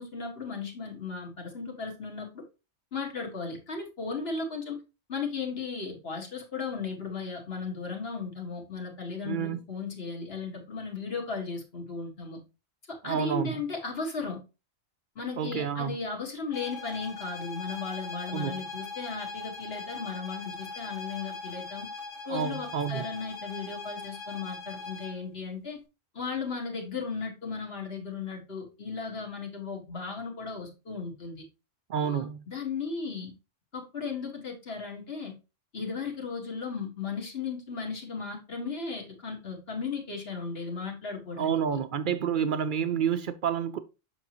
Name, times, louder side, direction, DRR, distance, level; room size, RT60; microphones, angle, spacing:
voice 1, 0.0-2.4 2.9-4.8 5.1-12.4 12.9-14.4 15.2-21.9 22.3-25.8 26.1-31.4 32.0-33.3 33.7-35.3 35.7-41.6, left 4 dB, 50° left, 1.9 m, -36 dB
voice 2, 9.2-9.6 13.0-13.6 15.4-16.0 18.3-18.5 22.3-23.0 31.9-32.5 41.4-43.8, right 8 dB, 60° right, 0.5 m, -29 dB
sound 1, 16.5-25.2, left 4 dB, 70° left, 1.8 m, -40 dB
7.1 x 5.9 x 3.0 m
omnidirectional pair, 1.3 m